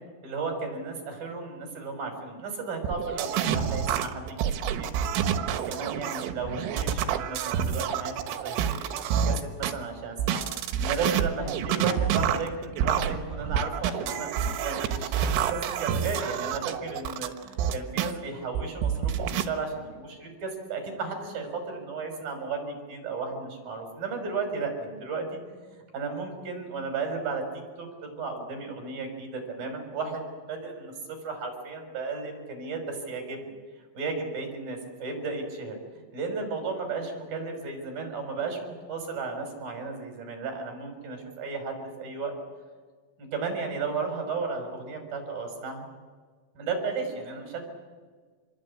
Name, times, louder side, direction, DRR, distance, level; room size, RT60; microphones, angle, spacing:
voice 1, 0.2-4.9 5.3-10.4 10.8-15.0 15.3-25.4 25.7-27.4 27.8-33.5 33.9-35.8 36.1-42.4 43.2-45.8 46.6-47.6, right 4 dB, 45° right, 4 dB, 7.4 m, -34 dB
sound 1, 2.8-9.7 10.2-18.1 18.6-19.5, right 8 dB, 80° right, 3.9 m, -28 dB
27.5 x 23.0 x 8.8 m, 1.5 s
omnidirectional pair, 5.9 m